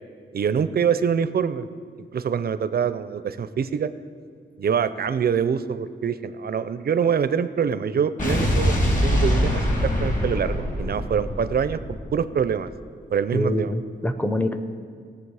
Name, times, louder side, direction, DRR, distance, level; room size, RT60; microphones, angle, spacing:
voice 1, 0.3-1.7 2.1-3.9 4.6-8.8 9.0-12.7 13.1-13.7, right 7 dB, 50° right, 13 dB, 0.5 m, -25 dB
Explosion, 8.2-12.5, equal, 40° left, 2.6 m, -23 dB
voice 2, 13.3-14.6, left 1 dB, 10° left, 9 dB, 0.6 m, -25 dB
18.0 x 7.1 x 4.8 m, 2.2 s
wide cardioid pair, 130°, 21 cm